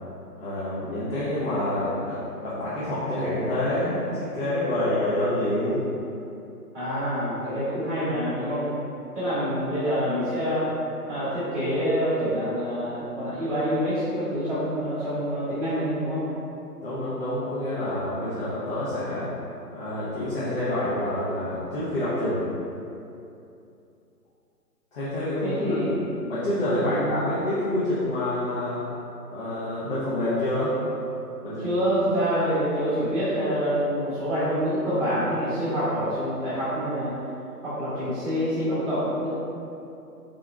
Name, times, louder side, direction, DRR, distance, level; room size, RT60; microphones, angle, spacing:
voice 1, 0.3-5.8 16.8-19.3 19.7-22.4 24.9-25.8 26.2-28.8 29.3-30.8 31.4-31.7, left 1 dB, 35° left, -12 dB, 0.8 m, -27 dB
voice 2, 6.7-8.7 9.1-10.7 11.1-16.3 25.4-26.0 26.8-27.0 31.6-37.2 37.6-39.3, equal, 5° right, -14 dB, 1.2 m, -26 dB
3.7 x 3.4 x 2.3 m, 2.7 s
figure-of-eight pair, 145°, 48 cm